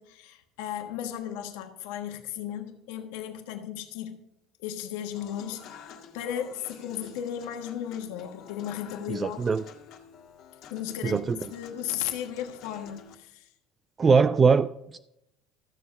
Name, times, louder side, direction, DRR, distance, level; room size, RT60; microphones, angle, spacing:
voice 1, 0.0-4.2 4.6-9.4 10.7-13.5, left 10 dB, 90° left, 1.3 m, -35 dB
Human voice / Acoustic guitar / Piano, 5.1-13.1, left 7 dB, 55° left, 1.7 m, -49 dB
voice 2, 9.1-9.6 11.0-11.4 14.0-15.0, right 5 dB, 20° right, 0.3 m, -22 dB
13.0 x 7.5 x 5.4 m
cardioid pair, 155°, 0 cm